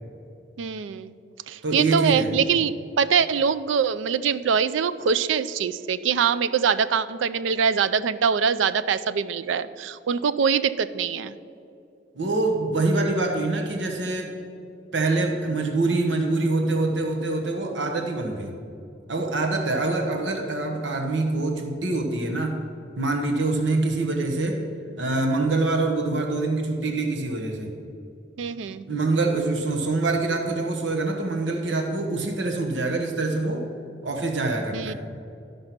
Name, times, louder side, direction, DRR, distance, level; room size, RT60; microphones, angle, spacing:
voice 1, 0.6-1.1 1.5-11.4 28.4-28.9 34.7-34.9, right 6 dB, 85° right, 14 dB, 0.4 m, -23 dB
voice 2, 1.6-2.4 12.2-14.3 14.9-18.5 19.1-22.6 23.0-24.6 25.0-27.7 28.9-33.7 34.0-34.9, right 2 dB, 70° right, 3 dB, 1.0 m, -25 dB
12.0 x 5.4 x 5.8 m, 2.7 s
head